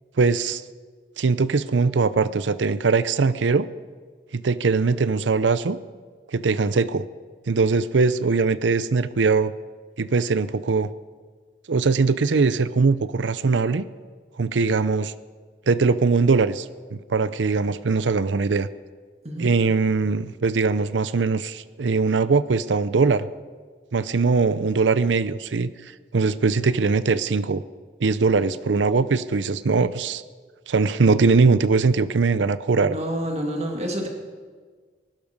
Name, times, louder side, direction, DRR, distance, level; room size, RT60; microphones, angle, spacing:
voice 1, 0.2-0.6 1.2-3.7 4.3-5.8 6.3-7.1 7.5-9.5 10.0-10.9 11.7-13.8 14.4-15.1 15.7-16.7 16.9-18.7 19.4-23.3 23.9-25.7 26.1-27.6 28.0-30.2 30.7-33.0, right 4 dB, 90° right, 15 dB, 0.6 m, -21 dB
voice 2, 32.9-34.1, equal, 35° right, 2 dB, 2.1 m, -28 dB
19.0 x 12.5 x 5.4 m, 1.5 s
head